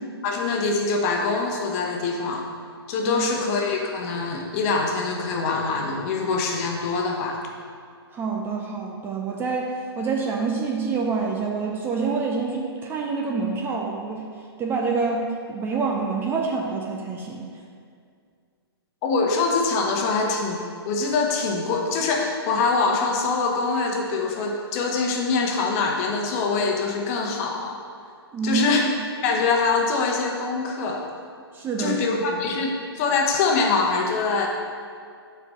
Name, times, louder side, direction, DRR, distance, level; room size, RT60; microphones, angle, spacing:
voice 1, 0.2-2.5 2.9-7.4 19.0-27.8 28.4-28.9 29.2-31.0 31.8-34.5, left 4 dB, 35° left, 1 dB, 1.1 m, -24 dB
voice 2, 8.1-14.2 14.6-17.5 28.3-28.8 31.5-32.0, right 4 dB, 15° right, 0 dB, 0.6 m, -27 dB
6.1 x 4.7 x 6.4 m, 2.2 s
figure-of-eight pair, 125°, 14 cm